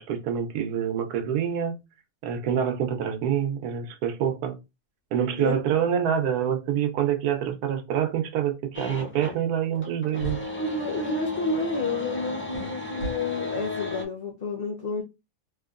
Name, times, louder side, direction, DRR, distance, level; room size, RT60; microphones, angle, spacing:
voice 1, 0.0-1.7 2.2-4.6 5.1-10.4, right 9 dB, 85° right, 1.2 m, -26 dB
sound 1, 8.7-9.4 9.7-14.0, left 2 dB, 15° left, 0.3 m, -34 dB
sound 2, 9.8-9.9 10.2-10.4 12.5-12.7 13.0-13.2, right 1 dB, 85° left, 1.5 m, -34 dB
voice 2, 10.6-15.0, left 3 dB, 45° left, 0.8 m, -30 dB
3.2 x 2.8 x 2.4 m
omnidirectional pair, 1.6 m